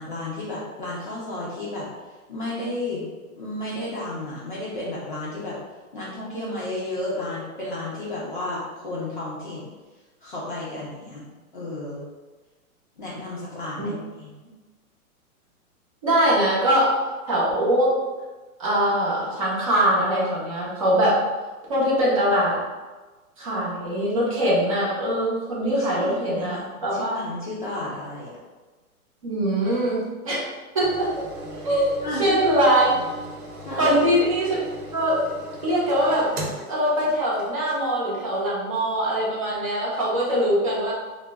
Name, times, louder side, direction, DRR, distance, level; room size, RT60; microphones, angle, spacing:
voice 1, 0.0-1.9 2.3-3.1 3.4-5.6 5.9-9.7 10.2-11.3 11.5-12.1 13.0-14.3 25.6-26.6 26.9-28.4 31.5-31.7 32.0-32.4 32.9-33.2 33.6-34.0, left 1 dB, 35° left, -7 dB, 0.4 m, -32 dB
voice 2, 16.0-16.9 17.3-17.9 18.6-21.2 21.7-22.6 23.4-27.2 29.2-31.1 31.6-31.9 32.2-32.9 33.8-34.6 34.9-35.3 35.6-36.3 36.7-40.9, right 1 dB, 25° right, -6 dB, 0.5 m, -22 dB
sound 1, 30.8-37.8 38.3-38.4, right 1 dB, 75° right, 0.8 m, -38 dB
2.2 x 2.0 x 3.3 m, 1.2 s
hypercardioid pair, 165°, 44 cm